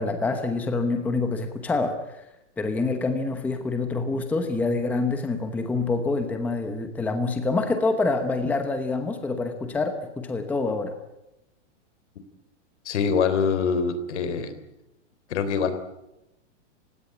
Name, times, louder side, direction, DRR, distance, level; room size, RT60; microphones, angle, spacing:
voice 1, 0.0-2.2 2.6-10.9, left 3 dB, 5° left, 6 dB, 1.0 m, -26 dB
voice 2, 12.9-14.5 15.3-15.8, left 6 dB, 65° left, 11 dB, 3.6 m, -24 dB
30.0 x 17.0 x 8.6 m, 0.90 s
supercardioid pair, 175°, 37 cm